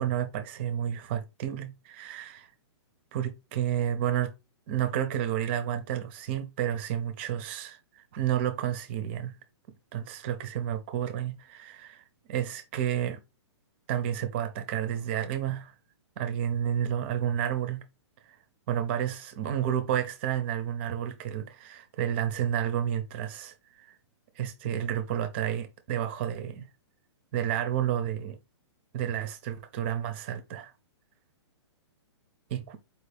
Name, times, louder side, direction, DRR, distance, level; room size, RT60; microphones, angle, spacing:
voice 1, 0.0-2.5 3.1-4.3 4.7-9.4 9.9-13.2 13.9-15.7 16.2-17.8 18.3-18.4 18.7-24.0 24.4-26.7 27.3-28.4 28.9-30.7 32.5-32.8, right 10 dB, 25° right, 0.6 m, -31 dB
4.4 x 2.7 x 3.3 m
hypercardioid pair, 175°, 15 cm